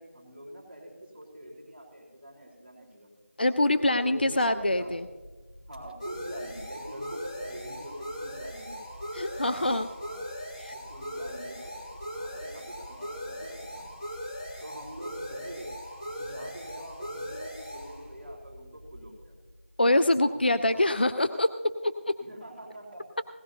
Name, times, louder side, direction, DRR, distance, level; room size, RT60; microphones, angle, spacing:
voice 1, 0.0-3.1 3.9-5.0 5.7-8.8 9.3-10.3 10.7-14.0 14.6-15.7 16.2-19.3 20.2-20.9 22.2-23.0, right 1 dB, 5° right, -10 dB, 1.9 m, -44 dB
voice 2, 3.4-5.0 9.1-9.9 10.6-10.7 19.8-22.1, left 1 dB, 45° left, 10 dB, 0.4 m, -25 dB
sound 1, 4.1-19.5, equal, 30° left, 2.0 m, -40 dB
18.0 x 12.5 x 2.7 m, 1.4 s
figure-of-eight pair, 175°, 7 cm